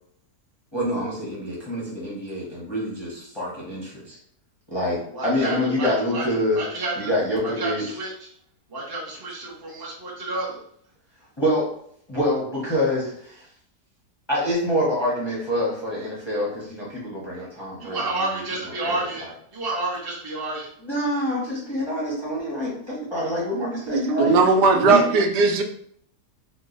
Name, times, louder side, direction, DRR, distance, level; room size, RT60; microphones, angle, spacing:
voice 1, 0.7-4.2 4.7-6.6 7.0-8.0 11.4-11.7 12.1-13.5 14.3-19.3 20.8-25.0, left 1 dB, 25° left, -7 dB, 0.6 m, -26 dB
voice 2, 5.1-6.2 6.5-7.1 7.4-8.1 8.7-10.6 17.8-19.3 19.5-20.7, right 2 dB, 25° right, -3 dB, 0.5 m, -30 dB
voice 3, 23.9-25.6, right 3 dB, 85° right, 3 dB, 1.2 m, -18 dB
3.0 x 2.2 x 3.8 m, 0.66 s
omnidirectional pair, 1.8 m